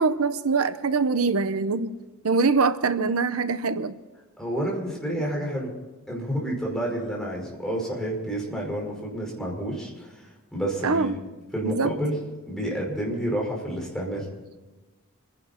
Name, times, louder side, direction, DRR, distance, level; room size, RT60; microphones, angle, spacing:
voice 1, 0.0-1.9 2.2-4.0 10.8-11.1 11.6-11.9, right 4 dB, 85° right, 12 dB, 0.7 m, -23 dB
voice 2, 4.4-5.7 6.1-10.1 10.5-11.2 11.5-14.3, right 1 dB, 5° left, -3 dB, 5.2 m, -29 dB
28.0 x 11.0 x 4.4 m, 1.2 s
head